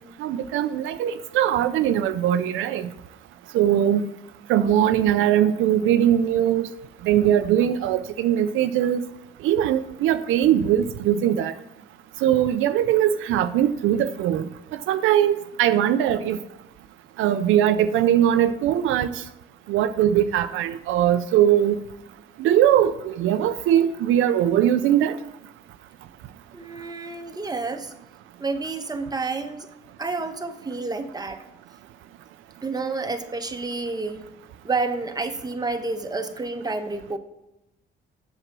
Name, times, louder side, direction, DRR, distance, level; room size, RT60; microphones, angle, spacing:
voice 1, 0.2-2.9 3.5-4.0 4.5-6.7 7.1-9.0 9.4-11.5 12.2-14.4 14.9-16.4 17.2-19.1 19.7-21.8 22.4-25.1, right 10 dB, 90° right, 10 dB, 0.5 m, -20 dB
voice 2, 26.5-27.9 28.4-29.7 30.0-31.4 32.6-34.3 34.6-37.2, right 3 dB, 20° right, 7 dB, 1.0 m, -29 dB
8.0 x 7.2 x 6.0 m, 0.92 s
cardioid pair, 90°, 20 cm